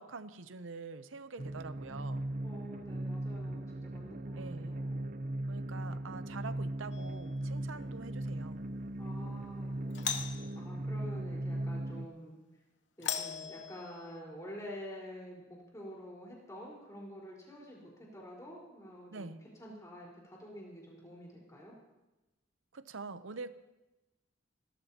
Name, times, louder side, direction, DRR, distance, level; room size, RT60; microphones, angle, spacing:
voice 1, 0.0-2.3 4.4-4.8 5.5-8.7 19.1-19.4 22.7-23.5, right 4 dB, 85° right, 12 dB, 0.8 m, -45 dB
sound 1, 1.4-12.1, right 1 dB, 45° right, 0.6 m, -38 dB
voice 2, 2.4-5.0 5.8-6.2 7.7-7.9 9.0-12.3 13.0-21.7, equal, 15° left, -4 dB, 4.6 m, -48 dB
Doorbell, 6.9-7.4 9.9-10.5 13.0-14.2, left 8 dB, 65° left, 0.9 m, -38 dB
27.0 x 13.5 x 2.9 m, 1.0 s
head